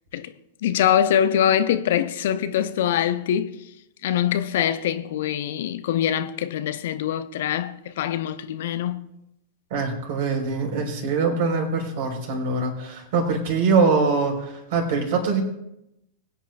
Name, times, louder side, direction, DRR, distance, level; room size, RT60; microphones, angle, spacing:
voice 1, 0.6-3.6 4.0-9.0, left 10 dB, 60° left, 0.7 m, -23 dB
voice 2, 9.7-15.4, right 4 dB, 55° right, 4.4 m, -23 dB
21.5 x 9.2 x 2.5 m
figure-of-eight pair, 95°, 0 cm